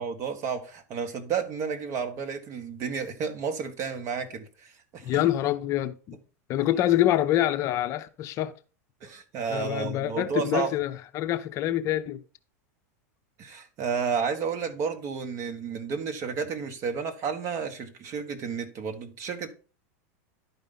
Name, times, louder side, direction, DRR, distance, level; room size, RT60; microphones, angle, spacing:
voice 1, 0.0-5.2 9.0-10.7 13.4-19.5, right 6 dB, 35° right, 1.7 m, -31 dB
voice 2, 5.0-6.2 6.5-8.5 9.5-12.2, left 13 dB, 35° left, 0.6 m, -26 dB
11.0 x 5.2 x 4.0 m
supercardioid pair, 145°, 8 cm